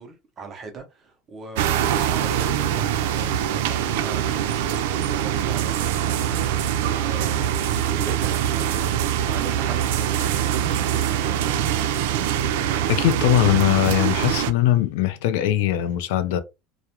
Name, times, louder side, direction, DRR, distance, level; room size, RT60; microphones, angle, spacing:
voice 1, 0.0-11.9, right 4 dB, 25° right, 0.7 m, -40 dB
sound 1, 1.5-14.5, right 10 dB, 85° right, 0.3 m, -23 dB
voice 2, 12.9-16.4, left 13 dB, 75° left, 0.4 m, -20 dB
2.3 x 2.0 x 2.8 m
cardioid pair, 160°, 0 cm